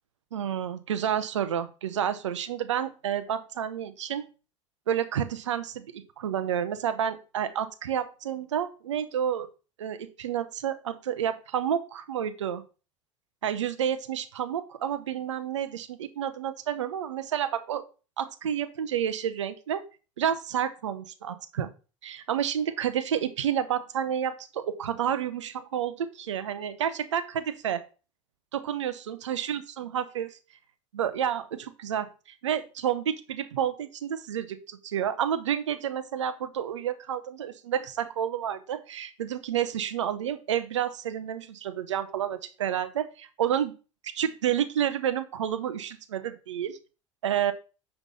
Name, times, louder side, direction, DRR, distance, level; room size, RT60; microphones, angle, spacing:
voice 1, 0.3-4.3 4.9-9.5 9.8-12.6 13.4-17.9 18.2-19.8 20.2-21.7 22.0-27.8 28.5-30.4 30.9-32.1 32.4-43.7 44.1-46.8 47.2-47.5, right 9 dB, 70° right, 11 dB, 0.9 m, -30 dB
9.8 x 3.4 x 5.5 m, 0.34 s
figure-of-eight pair, 70°, 16 cm